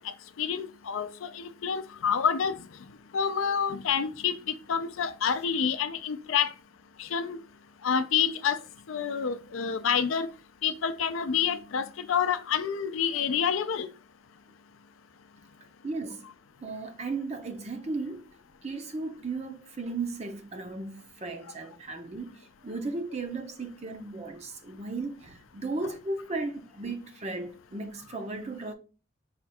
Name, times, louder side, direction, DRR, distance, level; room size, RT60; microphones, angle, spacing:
voice 1, 0.4-2.5 3.1-4.4 4.7-6.5 7.0-7.4 7.8-8.6 8.9-10.3 10.6-13.9 25.8-25.9, left 7 dB, 75° left, 0.5 m, -28 dB
voice 2, 15.8-16.3 16.6-18.3 18.6-28.7, right 3 dB, 30° right, 0.6 m, -35 dB
4.9 x 2.3 x 4.2 m
head